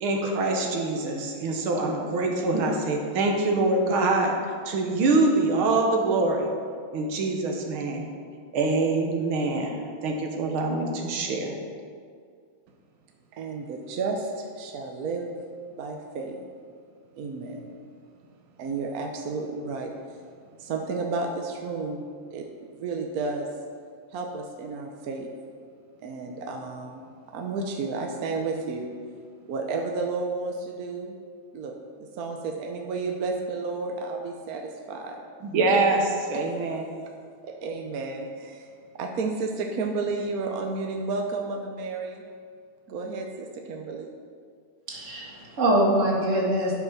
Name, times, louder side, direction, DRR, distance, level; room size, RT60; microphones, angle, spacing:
voice 1, 0.0-4.3 4.7-6.5 6.9-8.1 8.5-9.8 10.0-11.6 35.4-36.8, right 3 dB, 85° right, 2 dB, 2.0 m, -24 dB
voice 2, 13.3-15.3 15.7-16.4 17.2-17.7 18.6-20.2 20.6-22.0 22.3-22.5 22.8-23.5 24.1-25.3 26.0-28.9 29.5-31.1 31.5-35.2 36.3-36.4 37.4-38.7 38.9-42.2 42.9-44.1, right 3 dB, 60° right, 2 dB, 1.1 m, -32 dB
voice 3, 44.9-46.7, right 1 dB, 35° right, -3 dB, 2.2 m, -23 dB
11.5 x 6.0 x 6.0 m, 2.1 s
omnidirectional pair, 2.2 m